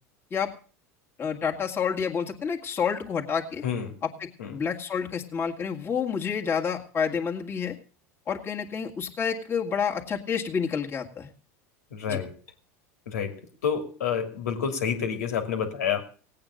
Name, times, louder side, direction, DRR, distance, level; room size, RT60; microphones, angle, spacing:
voice 1, 1.2-3.6 4.2-7.8 8.3-11.3 12.1-12.2, left 6 dB, 30° left, 0 dB, 2.1 m, -29 dB
voice 2, 3.6-4.0 4.4-4.5 11.9-12.3 13.1-16.0, left 7 dB, 90° left, 6 dB, 2.7 m, -29 dB
17.5 x 8.7 x 6.5 m, 0.40 s
supercardioid pair, 105°, 8 cm